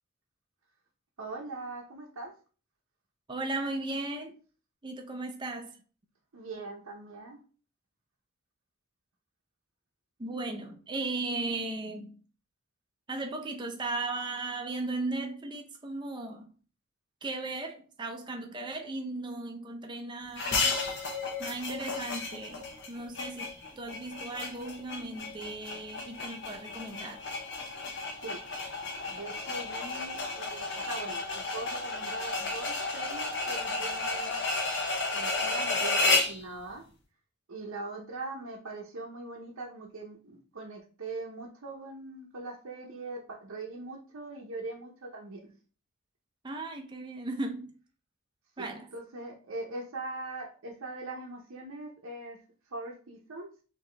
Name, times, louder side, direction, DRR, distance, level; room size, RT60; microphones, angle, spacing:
voice 1, 1.2-2.3 6.3-7.4 28.2-28.4 29.1-34.3 35.1-36.9 37.5-45.5 48.6-52.4 52.7-53.5, right 2 dB, 85° right, 0.8 m, -41 dB
voice 2, 3.3-4.4 4.8-5.8 10.2-12.1 13.1-16.5 17.2-20.7 21.4-23.5 23.7-27.2 46.4-47.7 48.6-48.9, right 2 dB, 20° right, 0.5 m, -36 dB
sound 1, 20.4-36.4, left 3 dB, 55° left, 0.9 m, -32 dB
4.8 x 2.8 x 3.3 m
head